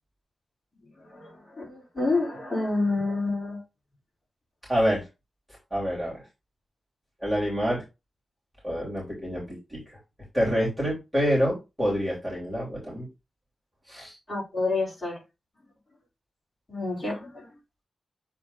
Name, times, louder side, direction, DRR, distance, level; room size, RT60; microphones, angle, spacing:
voice 1, 1.6-3.6 14.3-15.2 16.7-17.5, left 3 dB, 30° left, 4.5 m, -28 dB
voice 2, 4.7-5.1 5.7-6.2 7.2-7.8 8.6-10.0 10.3-13.1 13.9-14.2, equal, ahead, 3.0 m, -27 dB
7.4 x 3.7 x 3.9 m
wide cardioid pair, 150°, 0 cm